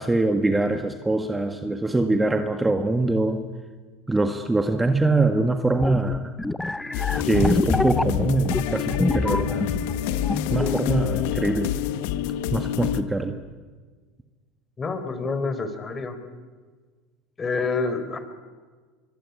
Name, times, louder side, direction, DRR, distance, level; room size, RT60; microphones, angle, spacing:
voice 1, 0.0-3.5 4.1-6.3 7.2-9.7 10.5-11.7 12.5-13.4, right 2 dB, 10° right, 7 dB, 1.7 m, -23 dB
sound 1, 5.8-10.0 10.2-10.8, left 2 dB, 10° left, 0.8 m, -26 dB
sound 2, 6.9-13.0, left 11 dB, 70° left, 1.5 m, -27 dB
voice 2, 14.8-16.2 17.4-18.3, left 4 dB, 25° left, 10 dB, 4.4 m, -28 dB
24.0 x 24.0 x 9.9 m, 1.5 s
supercardioid pair, 110°, 0 cm